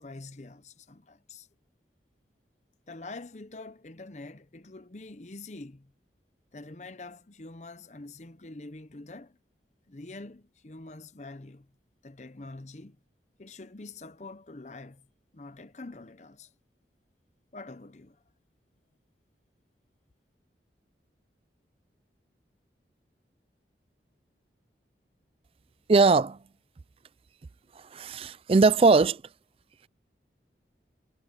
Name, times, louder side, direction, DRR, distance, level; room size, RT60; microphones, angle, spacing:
voice 1, 0.0-1.5 2.9-5.9 6.5-9.4 9.9-11.7 12.0-13.0 13.4-15.1 15.3-16.5 17.5-18.2, left 2 dB, 40° left, 0.8 m, -45 dB
voice 2, 25.9-26.4 27.8-29.2, right 4 dB, 30° right, 0.3 m, -21 dB
head